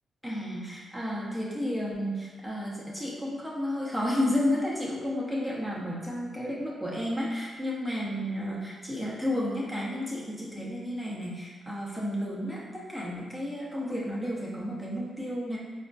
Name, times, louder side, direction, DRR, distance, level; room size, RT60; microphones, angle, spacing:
voice 1, 0.2-15.6, left 1 dB, 5° left, -5 dB, 0.9 m, -32 dB
4.2 x 2.5 x 2.3 m, 1.5 s
cardioid pair, 75°, 0 cm